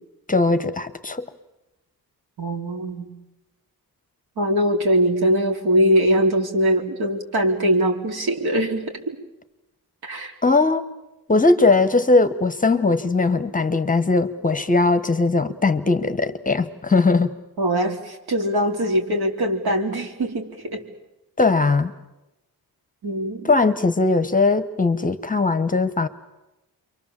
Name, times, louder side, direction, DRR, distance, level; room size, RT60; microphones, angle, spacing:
voice 1, 0.3-1.3 10.4-10.9 11.3-17.3 21.4-21.9 23.5-26.1, left 3 dB, 20° left, 11 dB, 1.0 m, -19 dB
voice 2, 2.4-3.1 4.4-9.2 10.0-10.3 17.6-20.8 23.0-23.6, equal, 80° right, 3 dB, 3.9 m, -22 dB
30.0 x 24.0 x 7.4 m, 0.99 s
wide cardioid pair, 175°, 37 cm